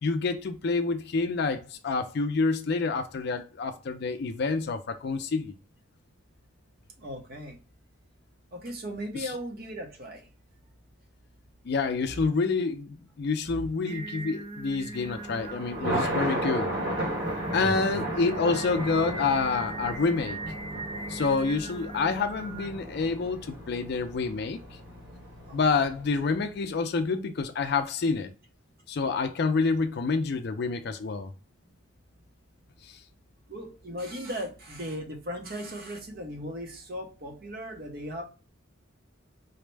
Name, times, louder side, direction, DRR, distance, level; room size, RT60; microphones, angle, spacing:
voice 1, 0.0-5.5 9.1-9.3 11.6-16.7 17.5-20.4 21.1-24.6 25.5-28.3 28.9-31.3, left 4 dB, 50° left, 0.4 m, -28 dB
voice 2, 7.0-7.6 8.5-10.2 12.0-12.3 13.5-13.7 17.6-18.0 25.5-25.8 33.5-38.2, equal, 45° right, 0.8 m, -37 dB
Singing, 13.9-22.7, right 2 dB, 25° right, 0.4 m, -40 dB
Thunder, 15.0-26.3, right 1 dB, 60° right, 1.3 m, -35 dB
4.0 x 2.1 x 3.2 m
head